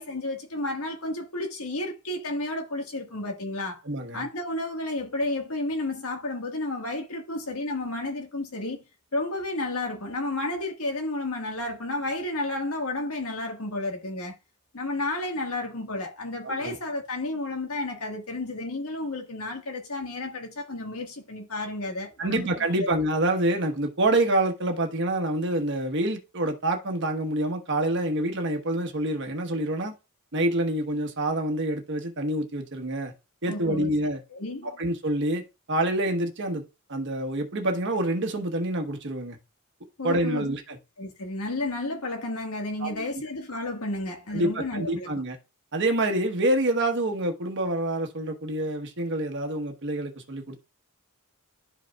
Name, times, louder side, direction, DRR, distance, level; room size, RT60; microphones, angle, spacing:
voice 1, 0.0-3.8 4.1-8.8 9.1-14.3 14.7-22.5 22.8-22.9 33.5-33.9 34.3-34.7 40.0-40.5 41.0-45.1, left 2 dB, 80° left, 1.6 m, -32 dB
voice 2, 3.8-4.2 16.4-16.8 22.2-29.9 30.3-33.1 33.4-34.2 34.6-36.6 36.9-39.4 40.0-40.8 42.8-42.9 44.3-45.4 45.7-50.6, right 1 dB, 55° right, 1.2 m, -27 dB
12.0 x 5.1 x 2.3 m
head